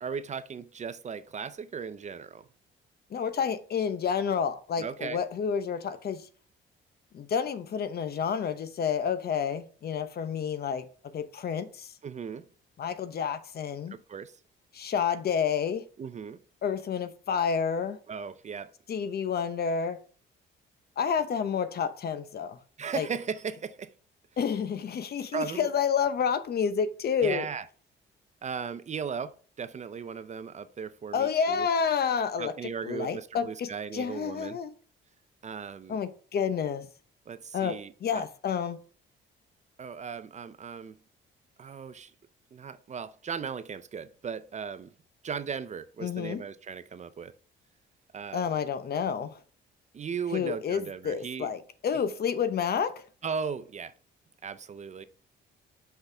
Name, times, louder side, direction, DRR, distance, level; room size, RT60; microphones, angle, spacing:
voice 1, 0.0-2.5 4.8-5.2 12.0-12.5 13.9-14.4 16.0-16.4 18.1-18.7 22.8-23.9 25.3-25.7 27.2-27.7 28.4-31.7 32.4-34.6 35.4-36.0 37.3-38.2 39.8-40.9 41.6-42.1 42.5-44.9 45.2-47.3 48.1-48.5 49.9-51.5 53.2-53.9 54.4-55.0, right 6 dB, 35° right, 0.5 m, -37 dB
voice 2, 3.1-6.3 7.1-10.8 11.1-11.9 12.8-14.0 14.7-15.8 16.6-18.0 18.9-20.0 21.0-22.6 22.9-23.1 24.4-27.4 31.1-32.5 32.8-34.7 35.9-36.9 37.5-38.8 46.0-46.4 48.3-49.4 50.3-53.0, left 7 dB, 55° left, 0.8 m, -29 dB
5.7 x 5.6 x 3.4 m
cardioid pair, 90°, 20 cm